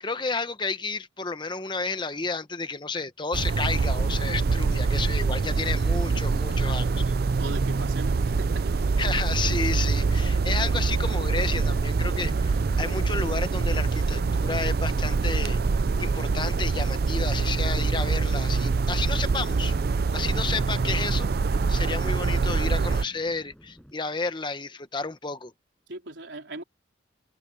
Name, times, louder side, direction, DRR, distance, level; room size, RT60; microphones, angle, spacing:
voice 1, 0.0-7.1 9.0-15.6 16.0-19.7 20.1-25.5, left 4 dB, 25° left, 1.0 m, -31 dB
sound 1, 3.3-23.0, right 4 dB, 55° right, 0.4 m, -25 dB
sound 2, 6.2-23.9, equal, 5° left, 7.5 m, -53 dB
voice 2, 7.4-9.0 25.9-26.6, right 2 dB, 75° right, 4.3 m, -39 dB
head